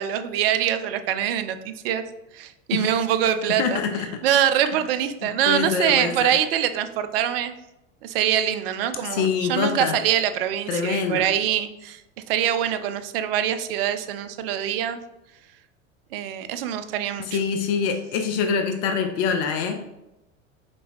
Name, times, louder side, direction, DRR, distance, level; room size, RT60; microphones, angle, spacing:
voice 1, 0.0-2.0 2.3-3.8 4.2-7.5 8.0-12.0 12.3-15.0 16.1-17.4, right 10 dB, 50° right, 10 dB, 0.4 m, -24 dB
voice 2, 3.6-4.1 5.5-6.3 9.1-9.9 10.7-11.3 17.3-19.7, left 6 dB, 35° left, 5 dB, 0.4 m, -24 dB
5.2 x 2.7 x 2.6 m, 0.92 s
figure-of-eight pair, 85°, 39 cm